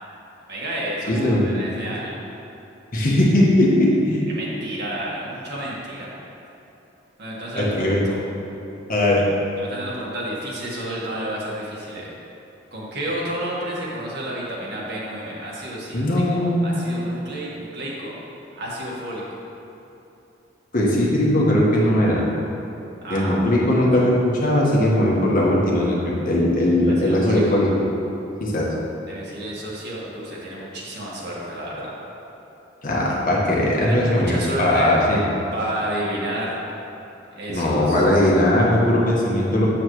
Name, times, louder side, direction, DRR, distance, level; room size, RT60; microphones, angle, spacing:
voice 1, 0.5-2.2 4.3-6.1 7.2-8.2 9.6-12.1 12.7-16.0 16.3-18.1 18.6-19.2 23.0-23.4 27.0-27.6 29.1-31.9 33.8-35.0 35.5-36.6 37.3-38.0, right 1 dB, 60° right, -5 dB, 1.7 m, -31 dB
voice 2, 1.1-1.4 2.9-4.3 7.6-8.0 8.9-9.2 15.9-16.7 20.7-22.2 23.1-27.7 28.4-28.7 32.8-35.2 37.5-39.7, left 1 dB, 50° left, -4 dB, 1.5 m, -19 dB
8.9 x 7.4 x 3.2 m, 3.0 s
head